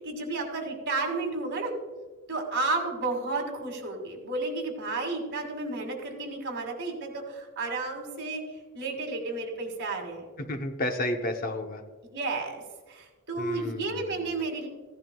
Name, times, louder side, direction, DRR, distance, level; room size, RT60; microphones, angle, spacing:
voice 1, 0.0-1.7 2.3-8.4 8.7-10.3 12.1-12.6 12.9-14.7, right 3 dB, 55° right, 2 dB, 2.2 m, -32 dB
voice 2, 10.4-11.8 13.4-14.2, left 1 dB, 40° left, 6 dB, 0.8 m, -32 dB
15.5 x 10.5 x 2.3 m, 1.3 s
head